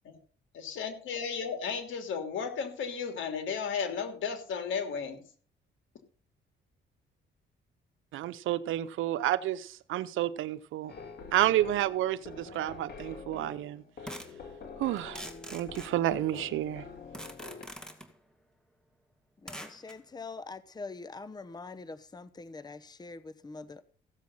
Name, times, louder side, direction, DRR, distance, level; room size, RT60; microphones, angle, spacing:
voice 1, 0.5-5.2, left 6 dB, 75° left, 3.2 m, -34 dB
voice 2, 8.1-10.9 11.3-13.8 14.8-16.8, right 13 dB, 85° right, 0.8 m, -30 dB
sound 1, 10.9-17.6, left 5 dB, 55° left, 2.6 m, -46 dB
sound 2, 12.5-12.6 14.1-14.4 15.0-16.5 17.1-18.1 19.5-20.0, equal, 5° left, 2.2 m, -44 dB
voice 3, 19.4-23.8, left 3 dB, 20° left, 0.9 m, -44 dB
15.5 x 7.6 x 5.6 m
cardioid pair, 90°, 20 cm